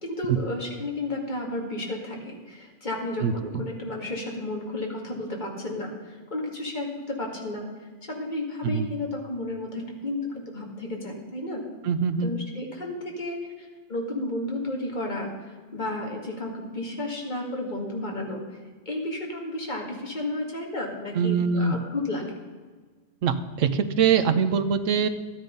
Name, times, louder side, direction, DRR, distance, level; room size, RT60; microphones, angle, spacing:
voice 1, 0.0-7.7 8.1-11.6 12.2-18.4 18.9-22.3, left 1 dB, 40° left, 0 dB, 2.4 m, -32 dB
voice 2, 11.8-12.3 21.2-21.8 23.2-25.1, right 6 dB, 90° right, 10 dB, 1.2 m, -23 dB
13.0 x 9.6 x 5.3 m, 1.4 s
omnidirectional pair, 1.3 m